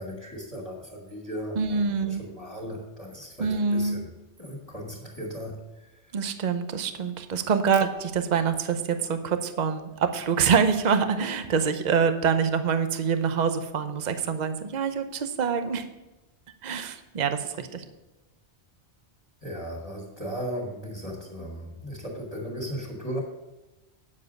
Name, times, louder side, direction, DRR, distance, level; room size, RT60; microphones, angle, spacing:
voice 1, 0.0-1.8 2.2-4.1 4.4-5.9 19.4-23.2, equal, 25° left, -6 dB, 2.3 m, -36 dB
voice 2, 1.6-2.2 3.4-4.0 6.1-15.8 16.6-17.8, right 6 dB, 45° right, 8 dB, 0.8 m, -25 dB
9.6 x 7.4 x 5.3 m, 1.0 s
omnidirectional pair, 1.1 m